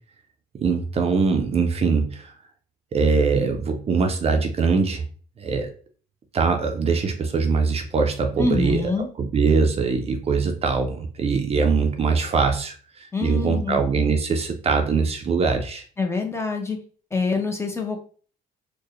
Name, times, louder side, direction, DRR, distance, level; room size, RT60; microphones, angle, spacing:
voice 1, 0.6-2.3 2.9-5.0 5.4-5.7 6.3-8.9 9.2-15.8, right 5 dB, 35° right, 5 dB, 0.5 m, -22 dB
voice 2, 8.4-9.1 13.1-13.8 16.0-16.8 17.1-18.0, left 3 dB, 15° left, 3 dB, 0.8 m, -25 dB
4.4 x 2.2 x 3.1 m, 0.43 s
cardioid pair, 110°, 17 cm